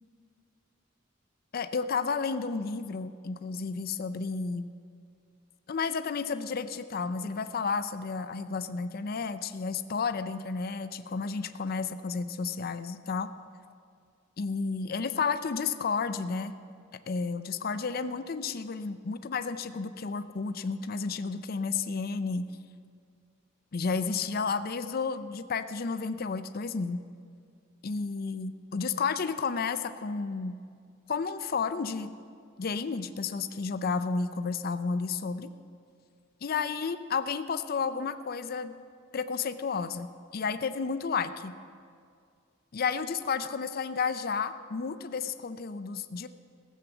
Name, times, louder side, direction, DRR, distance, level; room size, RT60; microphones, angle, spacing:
voice 1, 1.5-4.7 5.7-13.3 14.4-16.5 17.1-22.5 23.7-27.0 27.8-30.6 31.1-32.1 32.6-35.5 36.4-38.7 39.1-41.5 42.7-46.3, left 5 dB, 50° left, 11 dB, 0.5 m, -32 dB
16.0 x 7.4 x 6.9 m, 2.2 s
head